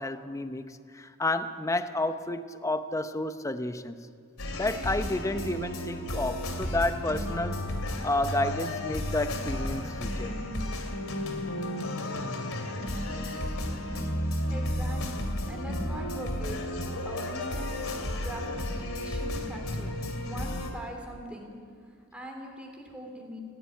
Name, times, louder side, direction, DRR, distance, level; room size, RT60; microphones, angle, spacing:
voice 1, 0.0-4.1 4.5-7.6 8.0-10.4, left 2 dB, 15° left, 10 dB, 0.8 m, -31 dB
sound 1, 4.4-20.7, left 1 dB, 90° left, 2.6 m, -33 dB
voice 2, 14.5-16.6 17.0-21.5 22.1-23.4, equal, 5° right, 1 dB, 3.3 m, -42 dB
19.0 x 16.0 x 9.3 m, 2.2 s
head